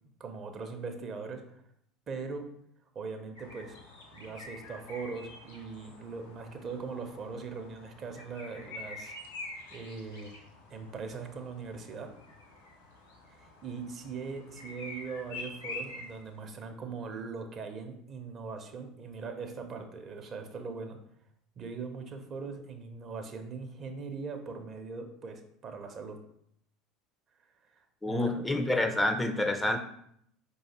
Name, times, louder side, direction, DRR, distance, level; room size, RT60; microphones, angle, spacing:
voice 1, 0.2-1.6 2.1-2.4 2.9-3.8 4.1-9.1 9.7-10.4 10.7-12.1 13.3-21.0 21.6-26.2 27.7-28.4, right 4 dB, 40° right, 6 dB, 0.6 m, -40 dB
sound 1, 3.4-16.4, left 2 dB, 75° left, 0.9 m, -47 dB
voice 2, 28.0-29.8, left 1 dB, 10° left, 6 dB, 0.4 m, -28 dB
4.8 x 3.1 x 2.9 m, 0.71 s
hypercardioid pair, 70°, 0 cm